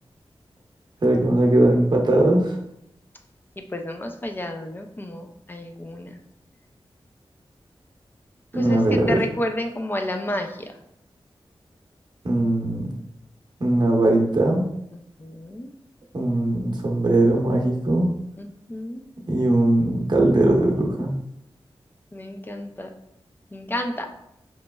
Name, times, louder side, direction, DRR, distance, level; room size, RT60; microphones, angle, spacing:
voice 1, 1.0-2.5 8.5-9.2 12.2-12.9 13.6-14.7 16.1-18.1 19.2-21.1, right 1 dB, 50° right, 0 dB, 0.8 m, -20 dB
voice 2, 3.6-6.2 8.5-10.7 14.9-15.7 18.4-19.0 22.1-22.9 23.5-24.1, left 1 dB, 20° left, 5 dB, 0.4 m, -31 dB
5.0 x 3.1 x 2.2 m, 0.80 s
wide cardioid pair, 85°, 10 cm